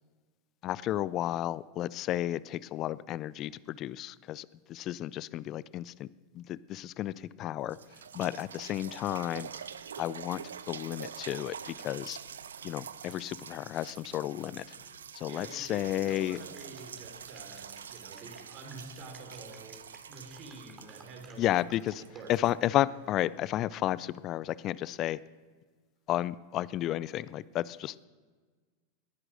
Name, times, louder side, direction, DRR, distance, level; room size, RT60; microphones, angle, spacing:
voice 1, 0.6-6.1 6.3-7.8 8.1-9.5 10.0-10.4 10.7-12.2 12.6-14.8 15.1-16.4 21.4-22.0 22.3-25.2 26.1-28.0, left 13 dB, 40° left, 20 dB, 0.5 m, -32 dB
sound 1, 7.1-7.2 7.6-23.4 24.0-24.1, right 7 dB, 75° right, 0.6 m, -46 dB
voice 2, 14.8-21.6 22.1-22.3, right 3 dB, 45° right, 3 dB, 4.3 m, -48 dB
sound 2, 16.1-22.2 22.7-23.1, right 4 dB, 20° right, 3.0 m, -56 dB
19.5 x 11.0 x 6.5 m, 1.4 s
figure-of-eight pair, 85°, 0 cm